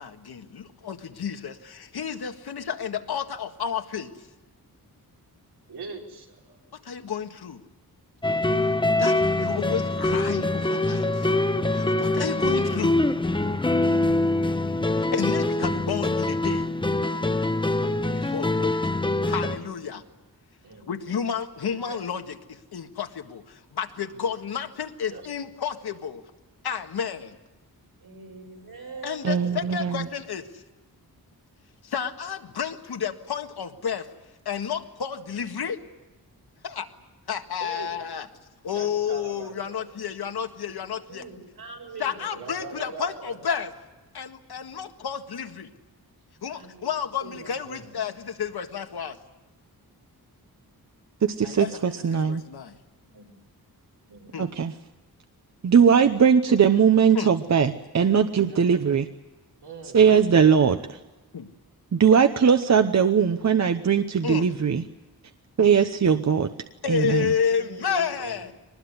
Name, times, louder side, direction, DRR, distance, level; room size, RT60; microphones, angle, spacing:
voice 1, 0.0-4.3 6.8-7.6 9.0-11.3 11.7-13.0 15.0-16.7 18.1-18.8 19.3-20.0 20.9-26.2 26.6-27.4 29.0-30.6 31.8-34.1 34.5-35.8 36.6-36.9 37.3-38.3 38.6-41.2 42.0-43.7 44.1-45.7 46.4-49.2 51.4-52.8 54.3-54.5 57.2-57.3 61.3-61.5 64.2-64.5 66.8-68.5, left 7 dB, 80° left, 6 dB, 1.9 m, -31 dB
voice 2, 5.7-6.6 19.4-19.6 20.6-20.9 21.6-22.0 25.1-25.3 29.3-29.6 37.6-38.1 38.7-40.0 42.2-43.5 47.5-47.9 53.1-53.3 54.1-54.4 58.5-58.9 59.6-60.1 68.1-68.3, right 4 dB, 85° right, 0 dB, 5.2 m, -42 dB
sound 1, 8.2-19.6, left 2 dB, 15° left, 1.0 m, -24 dB
voice 3, 28.0-29.3 41.1-42.2 46.5-46.9 47.2-47.5 58.6-58.9 67.5-68.1, right 4 dB, 65° right, 3 dB, 6.9 m, -43 dB
voice 4, 29.2-30.1 51.2-52.4 54.4-54.7 55.6-59.0 59.9-61.0 61.9-64.8 65.6-66.5 66.9-67.3, right 7 dB, 45° right, 8 dB, 0.9 m, -20 dB
24.0 x 20.0 x 9.7 m, 1.1 s
wide cardioid pair, 170°, 38 cm